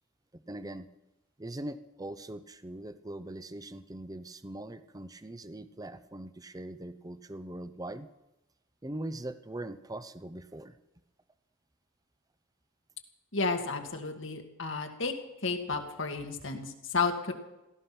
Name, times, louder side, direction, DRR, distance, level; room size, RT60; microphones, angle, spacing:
voice 1, 0.3-0.9 1.4-8.1 8.8-10.7, right 1 dB, 20° right, 13 dB, 0.7 m, -41 dB
voice 2, 13.3-15.1 15.4-17.3, left 4 dB, 65° left, 4 dB, 2.0 m, -32 dB
16.5 x 14.0 x 6.0 m, 0.97 s
head